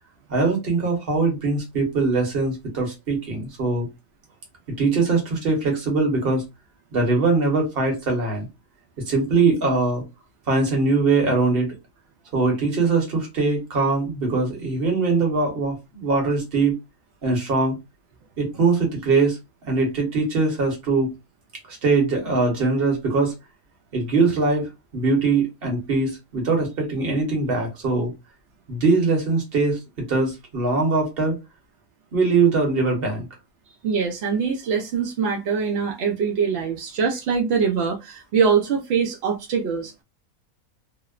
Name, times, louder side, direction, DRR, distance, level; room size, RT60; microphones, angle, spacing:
voice 1, 0.3-3.9 4.8-6.5 6.9-8.5 9.0-10.0 10.5-11.7 12.3-16.7 17.2-17.8 18.4-19.4 19.7-21.1 21.7-23.3 23.9-28.1 28.7-31.4 32.1-33.3, right 3 dB, 45° right, 1.1 m, -22 dB
voice 2, 33.8-39.9, right 6 dB, 70° right, 0.6 m, -23 dB
2.8 x 2.0 x 2.3 m
omnidirectional pair, 1.6 m